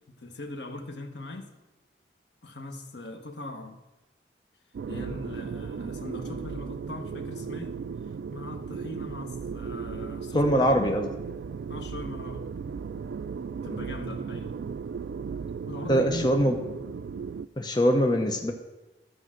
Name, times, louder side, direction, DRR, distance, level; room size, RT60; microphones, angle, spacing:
voice 1, 0.1-1.5 2.4-3.8 4.9-7.7 8.3-11.0 11.7-12.5 13.6-14.6 15.7-16.3, left 2 dB, 75° left, 6 dB, 1.2 m, -40 dB
sound 1, 4.7-17.5, right 6 dB, 80° right, 0.3 m, -36 dB
voice 2, 10.3-11.1 15.9-16.5 17.6-18.5, equal, 25° left, 4 dB, 0.7 m, -22 dB
12.5 x 4.9 x 7.6 m, 1.1 s
head